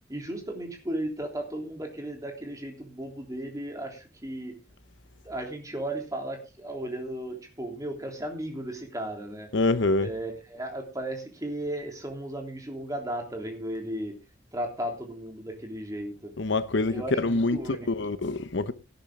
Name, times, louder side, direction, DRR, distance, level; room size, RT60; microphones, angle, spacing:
voice 1, 0.1-4.6 5.2-9.5 10.0-14.2 14.5-16.3 16.9-17.9, right 1 dB, 15° right, 3.2 m, -35 dB
voice 2, 9.5-10.1 16.4-17.6 17.9-18.7, left 2 dB, 70° left, 0.9 m, -25 dB
17.5 x 10.5 x 3.7 m
head